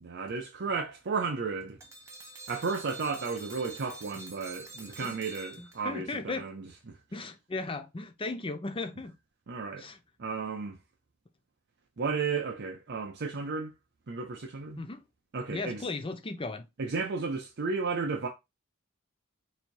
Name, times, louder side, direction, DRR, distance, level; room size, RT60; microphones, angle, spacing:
voice 1, 0.0-1.8 2.5-7.0 9.5-9.9 10.2-10.8 12.0-13.7 14.1-14.8 15.3-15.8 16.8-18.3, right 4 dB, 55° right, 0.6 m, -33 dB
sound 1, 1.8-6.1, right 2 dB, 15° right, 1.0 m, -47 dB
voice 2, 5.6-6.5 7.1-9.1 9.8-10.0 14.8-15.0 15.5-16.7, left 3 dB, 25° left, 0.6 m, -36 dB
4.0 x 2.7 x 4.5 m
head